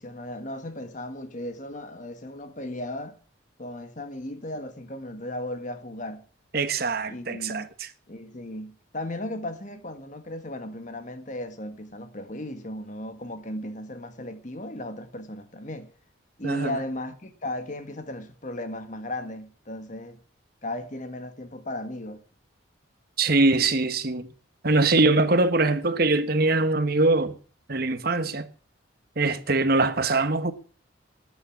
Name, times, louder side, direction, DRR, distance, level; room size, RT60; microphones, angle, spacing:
voice 1, 0.0-3.2 3.6-6.2 7.1-7.7 8.1-15.9 16.4-20.2 20.6-22.2, left 1 dB, 40° left, 1.6 m, -36 dB
voice 2, 6.5-7.9 16.4-16.8 23.2-24.3 24.6-27.4 27.7-28.5 29.2-30.5, right 3 dB, 50° right, 1.2 m, -23 dB
13.5 x 9.5 x 7.2 m
head